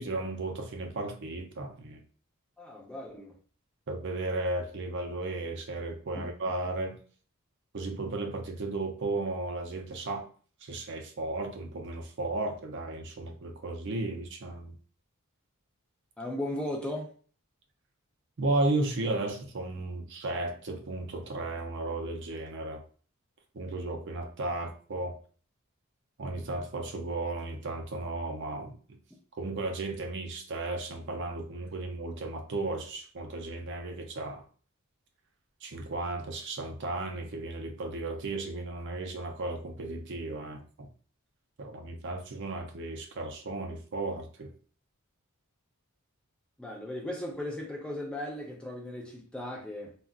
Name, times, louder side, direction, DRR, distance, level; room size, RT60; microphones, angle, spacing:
voice 1, 0.0-2.0 3.9-7.0 7.7-10.3 10.6-14.8 18.4-22.8 23.5-25.2 26.2-28.8 29.3-34.4 35.6-40.9 41.6-44.5, right 2 dB, 55° right, 0.5 m, -34 dB
voice 2, 2.6-3.4 6.1-6.3 16.2-17.1 46.6-49.9, left 1 dB, 5° left, 0.4 m, -37 dB
2.4 x 2.2 x 3.6 m
head